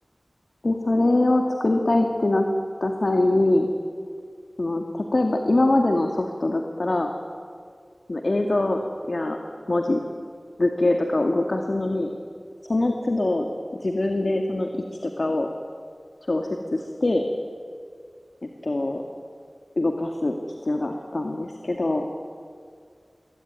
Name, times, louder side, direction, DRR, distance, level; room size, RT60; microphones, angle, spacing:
voice 1, 0.6-2.5 2.8-3.7 4.6-7.1 8.1-8.8 9.1-9.4 9.7-10.0 10.6-12.1 12.7-14.7 15.0-15.5 16.3-17.2 18.4-19.0 19.8-20.4 20.6-22.1, left 2 dB, 60° left, 3 dB, 2.1 m, -23 dB
26.0 x 22.0 x 9.4 m, 2.2 s
wide cardioid pair, 50°, 0 cm